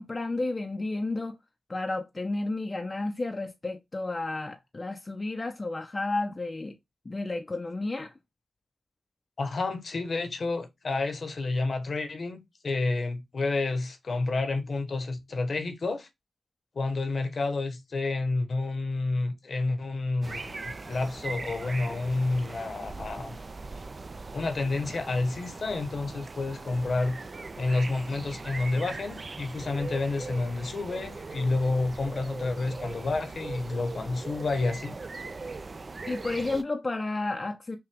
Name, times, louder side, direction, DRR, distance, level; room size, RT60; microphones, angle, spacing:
voice 1, 0.0-1.4 1.7-6.7 7.1-8.1 36.1-37.8, left 2 dB, 30° left, 0.5 m, -32 dB
voice 2, 9.4-16.1 16.7-23.4 24.3-27.2 27.6-35.0, left 3 dB, 55° left, 0.9 m, -29 dB
sound 1, 20.2-36.6, right 3 dB, 40° right, 0.4 m, -40 dB
5.7 x 2.3 x 3.4 m
wide cardioid pair, 85°, 0 cm